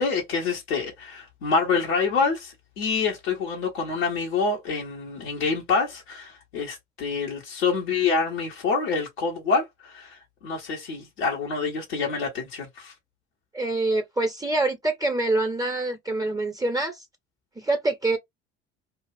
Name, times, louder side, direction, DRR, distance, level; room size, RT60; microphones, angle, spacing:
voice 1, 0.0-12.9, left 4 dB, 80° left, 1.1 m, -27 dB
voice 2, 13.5-17.0 17.6-18.2, right 2 dB, 10° right, 0.7 m, -25 dB
2.5 x 2.4 x 3.1 m
hypercardioid pair, 60°, 31 cm